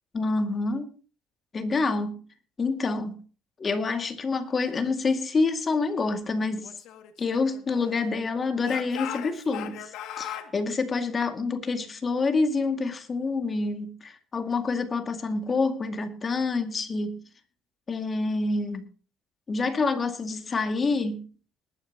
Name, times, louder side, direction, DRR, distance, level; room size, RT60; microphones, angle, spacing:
voice 1, 0.1-0.9 1.5-2.2 2.6-3.2 3.6-6.7 7.2-9.9 10.2-17.2 17.9-18.8 19.5-21.3, left 3 dB, 30° left, 2.1 m, -27 dB
Speech / Shout, 6.6-8.2 8.6-10.5, left 11 dB, 70° left, 2.1 m, -39 dB
20.0 x 11.5 x 2.9 m
cardioid pair, 125°, 0 cm